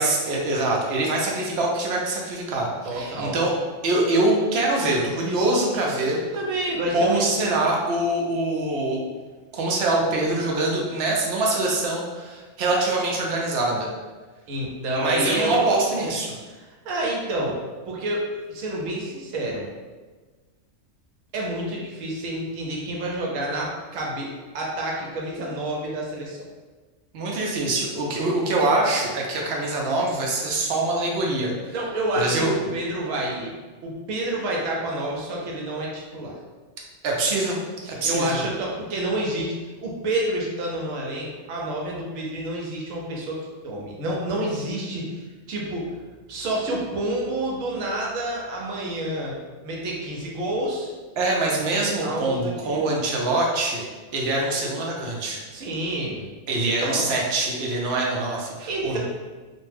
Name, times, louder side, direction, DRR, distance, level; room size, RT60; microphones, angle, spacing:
voice 1, 0.0-3.5 3.8-6.2 6.9-9.0 9.5-13.9 14.9-16.3 27.1-31.7 32.1-32.5 37.0-37.6 37.9-38.4 51.2-53.8 54.1-55.4 56.5-59.0, right 2 dB, 65° right, -2 dB, 0.7 m, -24 dB
voice 2, 2.8-3.4 6.3-7.7 14.5-15.6 15.9-16.1 16.5-17.6 17.9-19.7 21.3-26.5 31.7-33.5 33.8-36.4 37.8-39.5 39.8-43.4 43.6-45.2 45.5-45.9 46.3-49.4 49.6-50.9 52.0-52.8 55.5-56.3 56.6-57.1 58.7-59.0, right 1 dB, 85° right, -2 dB, 1.0 m, -28 dB
2.4 x 2.1 x 3.2 m, 1.3 s
omnidirectional pair, 1.3 m